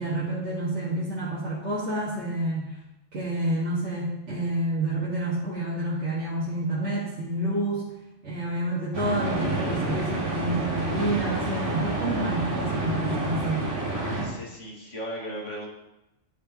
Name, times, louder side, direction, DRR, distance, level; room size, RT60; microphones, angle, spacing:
voice 1, 0.0-2.7 3.1-7.9 8.2-13.7, right 1 dB, 60° right, -8 dB, 1.9 m, -29 dB
sound 1, 8.9-14.3, right 2 dB, 45° right, 1.8 m, -29 dB
voice 2, 9.3-9.9 13.9-15.7, equal, 70° left, -3 dB, 2.2 m, -38 dB
11.0 x 6.5 x 2.9 m, 0.93 s
omnidirectional pair, 1.3 m